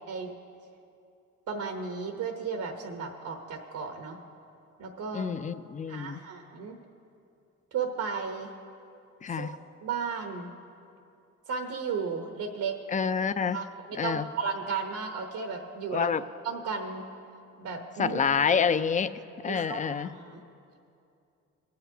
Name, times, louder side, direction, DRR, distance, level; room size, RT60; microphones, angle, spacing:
voice 1, 1.5-4.2 4.8-5.4 5.9-6.8 7.7-8.5 9.3-10.5 11.5-12.7 13.4-16.1 16.4-17.0 17.6-18.2 19.5-20.4, right 5 dB, 80° right, 4 dB, 1.0 m, -34 dB
voice 2, 5.1-6.2 9.2-9.6 12.9-13.6 14.0-14.2 15.9-16.2 18.0-19.1 19.4-20.1, left 6 dB, 25° left, 13 dB, 0.4 m, -27 dB
22.0 x 7.8 x 2.8 m, 2.6 s
cardioid pair, 90°, 30 cm